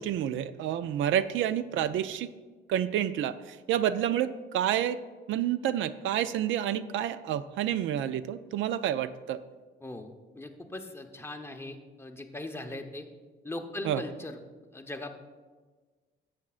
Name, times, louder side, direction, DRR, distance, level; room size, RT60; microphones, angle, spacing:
voice 1, 0.0-2.3 2.7-5.0 5.3-9.4 13.8-14.0, right 10 dB, 80° right, 14 dB, 0.4 m, -29 dB
voice 2, 9.8-13.1 13.4-14.4 14.7-15.2, left 1 dB, 10° left, 4 dB, 0.9 m, -40 dB
13.5 x 8.5 x 2.4 m, 1.4 s
cardioid pair, 90°, 20 cm